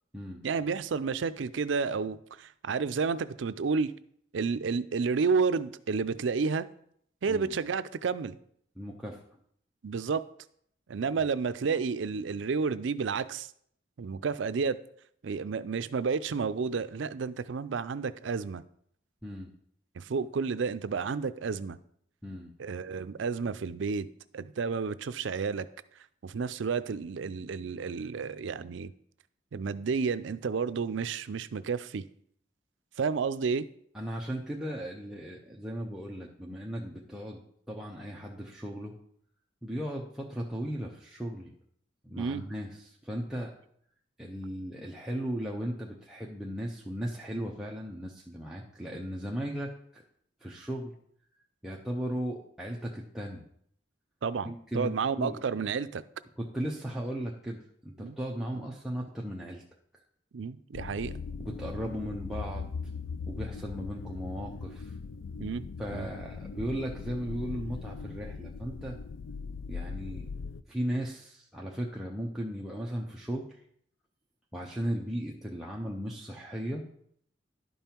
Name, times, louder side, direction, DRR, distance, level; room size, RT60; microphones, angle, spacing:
voice 1, 0.4-3.9 4.3-6.7 7.2-8.4 9.8-10.2 10.9-13.5 14.0-14.8 15.2-18.6 20.0-21.8 22.6-24.1 24.3-25.7 26.2-28.9 29.5-32.0 33.0-33.7 42.2-42.5 54.2-56.0 58.0-58.2 58.5-58.7 60.3-61.2 65.4-65.6 65.9-66.1, right 5 dB, 70° right, 14 dB, 0.4 m, -31 dB
voice 2, 8.8-9.2 19.2-19.5 22.2-22.5 33.9-38.9 39.6-41.5 42.0-43.5 44.2-50.0 50.4-50.9 51.6-53.5 54.4-55.4 56.4-59.6 61.4-62.7 63.3-65.0 65.8-69.0 69.7-70.3 70.7-73.5 74.5-76.9, equal, 5° right, -3 dB, 0.7 m, -36 dB
sound 1, 60.7-70.6, left 5 dB, 80° left, 0.4 m, -39 dB
11.5 x 5.4 x 4.4 m, 0.66 s
head